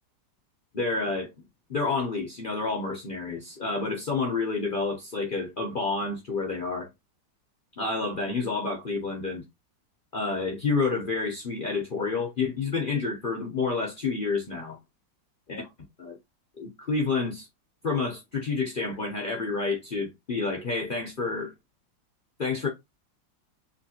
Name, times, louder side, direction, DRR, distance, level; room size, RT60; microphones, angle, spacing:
voice 1, 0.7-1.3 1.7-6.9 7.8-9.4 10.1-14.8 15.5-15.7 16.0-16.2 16.6-17.5 17.8-21.5 22.4-22.7, left 4 dB, 75° left, 0.4 m, -29 dB
3.2 x 2.9 x 2.7 m
omnidirectional pair, 1.9 m